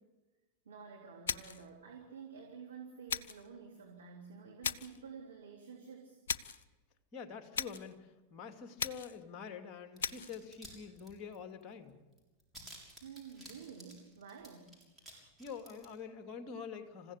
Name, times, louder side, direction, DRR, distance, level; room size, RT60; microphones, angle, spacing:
voice 1, 0.7-6.2 13.0-14.8, right 6 dB, 65° right, -1 dB, 3.4 m, -50 dB
sound 1, 1.3-1.7 3.1-3.5 4.6-5.0 6.3-6.6 7.5-7.9 8.8-9.2 10.0-10.4, left 6 dB, 65° left, 0.8 m, -38 dB
voice 2, 7.1-12.0 15.1-17.1, left 6 dB, 30° left, 7 dB, 2.6 m, -46 dB
sound 2, 10.0-10.7 11.0-11.6 11.9-12.0 12.2-15.1 15.4-15.9, right 1 dB, 5° right, 6.9 m, -53 dB
27.5 x 16.0 x 8.4 m, 1.2 s
figure-of-eight pair, 90°, 0 cm